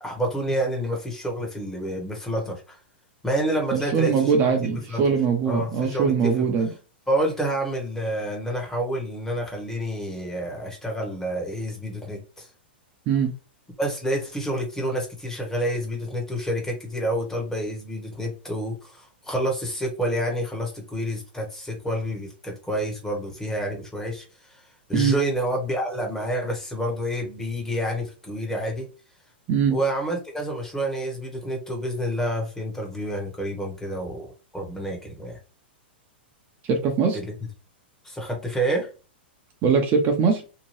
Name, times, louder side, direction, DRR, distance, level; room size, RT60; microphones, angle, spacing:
voice 1, 0.0-2.8 3.2-5.0 5.4-6.5 7.1-12.5 13.8-24.6 24.9-28.9 29.7-34.3 34.5-35.4 37.1-37.3 38.0-38.9, right 1 dB, 5° left, 1 dB, 1.0 m, -28 dB
voice 2, 3.7-6.7 13.1-13.3 24.9-25.2 29.5-29.8 36.6-37.2 39.6-40.4, right 6 dB, 35° right, 3 dB, 0.6 m, -22 dB
2.8 x 2.2 x 3.1 m, 0.33 s
hypercardioid pair, 115°, 6 cm